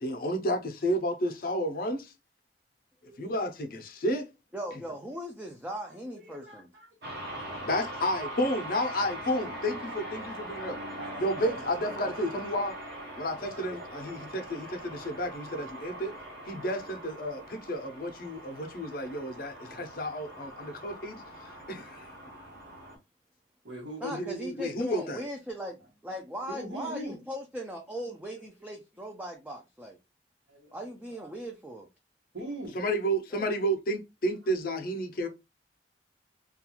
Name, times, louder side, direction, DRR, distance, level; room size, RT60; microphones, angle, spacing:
voice 1, 0.0-2.1 3.2-4.3 7.6-10.8 11.2-12.8 13.2-16.1 16.5-22.1 24.0-24.3 24.6-25.2 32.7-35.3, equal, 55° left, 0.5 m, -31 dB
voice 2, 3.1-3.4 5.9-8.2 8.5-8.9 10.9-12.1 13.4-14.4 15.7-16.1 23.6-24.6 26.5-27.2 28.0-28.5 30.5-30.9 32.3-32.8 35.2-35.3, right 2 dB, 90° right, 1.0 m, -43 dB
voice 3, 4.5-6.7 24.0-30.0 30.7-31.9 33.3-33.4, equal, 5° right, 0.3 m, -39 dB
sound 1, 7.0-23.0, right 1 dB, 70° right, 1.0 m, -42 dB
2.4 x 2.3 x 2.8 m
head